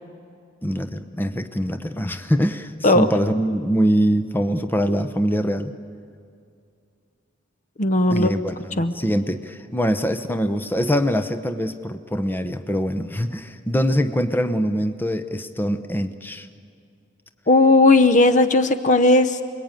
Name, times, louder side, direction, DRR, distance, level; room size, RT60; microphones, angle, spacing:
voice 1, 0.6-5.7 8.1-16.5, equal, 10° left, 8 dB, 0.9 m, -23 dB
voice 2, 7.8-8.3 8.8-8.9 17.5-19.4, left 2 dB, 40° left, 10 dB, 0.8 m, -16 dB
29.5 x 21.5 x 9.1 m, 2.4 s
head